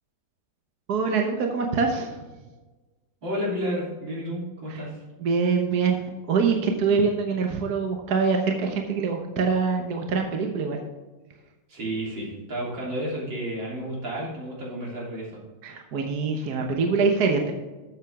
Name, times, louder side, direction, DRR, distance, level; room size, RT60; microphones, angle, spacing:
voice 1, 0.9-2.3 4.7-4.8 5.2-10.8 15.6-17.5, right 5 dB, 60° right, 3 dB, 1.5 m, -24 dB
voice 2, 3.2-5.0 11.7-15.4, equal, 80° right, -4 dB, 4.0 m, -31 dB
13.0 x 7.8 x 3.6 m, 1.2 s
omnidirectional pair, 2.0 m